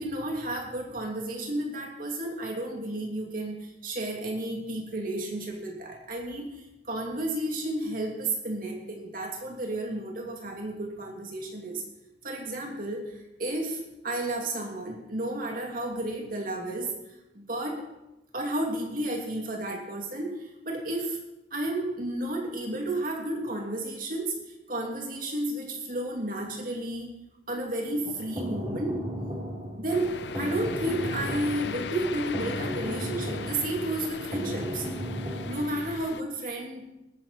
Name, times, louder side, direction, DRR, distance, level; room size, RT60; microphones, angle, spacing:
voice 1, 0.0-11.8 12.2-16.9 17.3-17.8 18.3-21.2 21.5-24.4 24.7-27.1 27.5-29.0 29.8-34.8 35.5-36.9, right 1 dB, 50° right, 0 dB, 2.7 m, -32 dB
sound 1, 27.9-35.7, equal, 25° right, 3.4 m, -35 dB
sound 2, 29.9-36.2, left 5 dB, 75° left, 0.6 m, -38 dB
19.5 x 9.1 x 4.4 m, 0.94 s
head